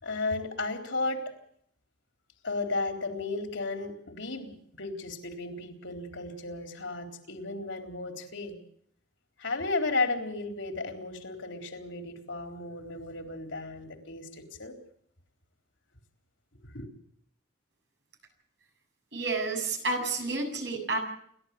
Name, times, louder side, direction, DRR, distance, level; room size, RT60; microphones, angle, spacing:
voice 1, 0.0-1.3 2.4-8.6 9.4-14.7 16.7-16.9, left 3 dB, 90° left, 4 dB, 4.0 m, -34 dB
voice 2, 19.1-21.0, right 3 dB, 65° right, 2 dB, 7.6 m, -30 dB
29.0 x 12.5 x 8.4 m, 0.67 s
head